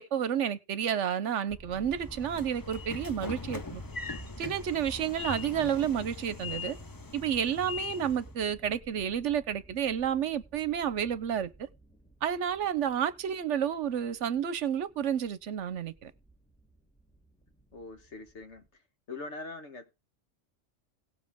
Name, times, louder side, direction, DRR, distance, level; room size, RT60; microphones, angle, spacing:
voice 1, 0.0-3.8 4.4-6.8 7.1-11.5 12.2-16.1, right 9 dB, 75° right, 1.1 m, -30 dB
sound 1, 1.5-18.7, right 2 dB, 5° left, 2.4 m, -52 dB
Train / Sliding door, 1.8-8.3, left 5 dB, 30° left, 0.4 m, -41 dB
voice 2, 17.7-18.7 19.1-19.9, left 3 dB, 65° left, 1.8 m, -42 dB
17.0 x 7.4 x 3.6 m
omnidirectional pair, 1.3 m